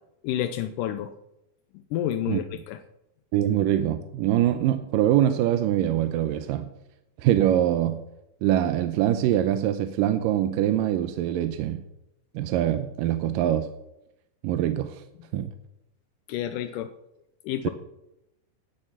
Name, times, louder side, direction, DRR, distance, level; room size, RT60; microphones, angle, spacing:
voice 1, 0.2-1.1 1.9-2.8 15.4-15.5 16.3-16.9 17.4-17.7, left 11 dB, 85° left, 10 dB, 2.2 m, -29 dB
voice 2, 3.3-6.7 7.2-8.0 8.4-11.8 12.3-13.7 14.4-15.0 15.3-15.5 17.6-17.7, right 11 dB, 85° right, 8 dB, 2.4 m, -24 dB
17.5 x 7.7 x 6.0 m, 0.87 s
omnidirectional pair, 3.9 m